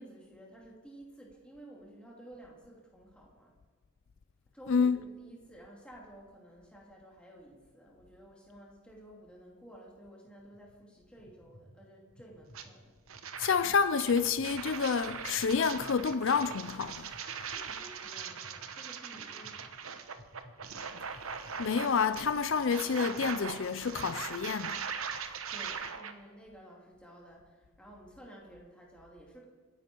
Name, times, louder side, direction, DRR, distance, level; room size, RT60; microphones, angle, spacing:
voice 1, 0.0-3.5 4.5-13.0 17.5-20.0 25.5-29.4, right 1 dB, 5° left, 2.7 m, -53 dB
voice 2, 4.7-5.0 13.4-17.1 21.6-24.8, left 5 dB, 60° left, 0.4 m, -29 dB
sound 1, 10.2-10.6 11.2-11.6 12.1-12.6 13.1-13.5 14.1-14.5 15.1-15.5 16.1-16.5 17.1-17.5 18.2-18.5 19.2-19.5 20.2-20.5 21.1-21.5, left 1 dB, 30° left, 5.5 m, -56 dB
sound 2, 12.5-12.7 13.1-26.1, right 6 dB, 75° right, 1.1 m, -41 dB
26.0 x 10.5 x 4.6 m
head